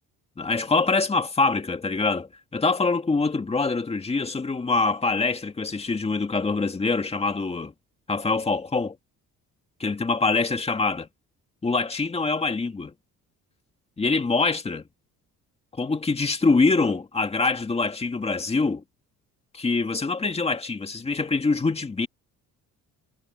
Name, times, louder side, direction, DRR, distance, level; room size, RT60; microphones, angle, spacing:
voice 1, 0.4-7.7 8.1-9.0 9.8-11.1 11.6-12.9 14.0-14.8 15.7-18.8 19.5-22.1, left 3 dB, 20° left, 1.9 m, -24 dB
cardioid pair, 130°, 31 cm